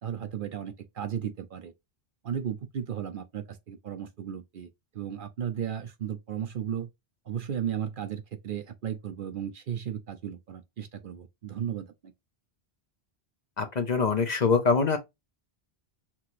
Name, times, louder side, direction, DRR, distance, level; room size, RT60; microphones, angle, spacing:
voice 1, 0.0-1.7 2.2-4.7 4.9-6.9 7.3-12.1, right 9 dB, 60° right, 0.7 m, -35 dB
voice 2, 13.6-15.0, left 5 dB, 45° left, 0.7 m, -24 dB
5.9 x 2.8 x 3.0 m
omnidirectional pair, 1.1 m